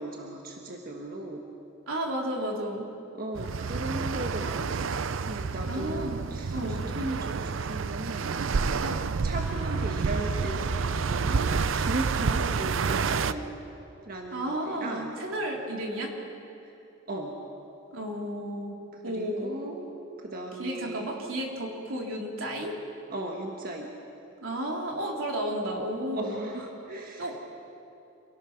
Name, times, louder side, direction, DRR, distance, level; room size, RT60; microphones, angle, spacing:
voice 1, 0.0-1.4 3.1-4.9 5.3-8.3 9.2-11.5 11.8-13.4 14.1-15.1 16.6-16.7 17.1-17.3 19.1-19.8 20.2-21.1 23.1-23.9 26.1-27.4, right 2 dB, 45° right, 1 dB, 1.5 m, -37 dB
voice 2, 1.9-2.9 5.7-6.2 6.5-6.8 8.8-9.0 12.2-12.4 14.3-16.1 17.9-18.7 19.0-19.5 20.6-22.8 24.4-26.4 27.2-27.4, right 1 dB, 80° right, 0 dB, 3.2 m, -32 dB
sound 1, 3.4-13.3, right 5 dB, 65° right, 0.5 m, -29 dB
26.5 x 18.0 x 5.9 m, 2.8 s
head